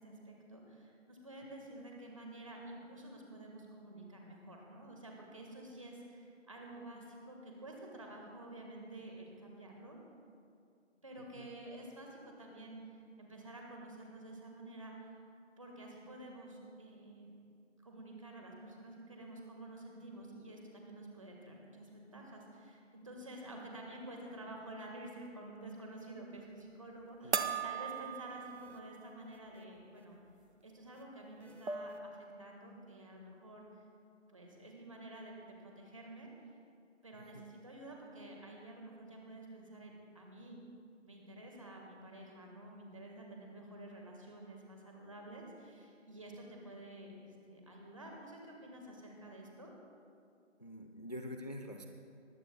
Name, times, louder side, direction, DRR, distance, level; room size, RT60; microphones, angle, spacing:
voice 1, 0.0-10.0 11.0-15.2 15.6-17.3 17.8-30.2 30.6-33.6 34.3-36.3 37.0-40.6 41.0-49.7, right 1 dB, 25° right, 0 dB, 1.5 m, -50 dB
voice 2, 27.2-27.6 37.1-37.5 50.6-51.9, left 1 dB, 35° left, 4 dB, 0.5 m, -46 dB
sound 1, 27.3-28.9 29.3-29.4 31.0-31.1 31.4-32.1, right 5 dB, 60° right, 0.8 m, -38 dB
20.0 x 14.5 x 2.2 m, 2.4 s
figure-of-eight pair, 170°, 37 cm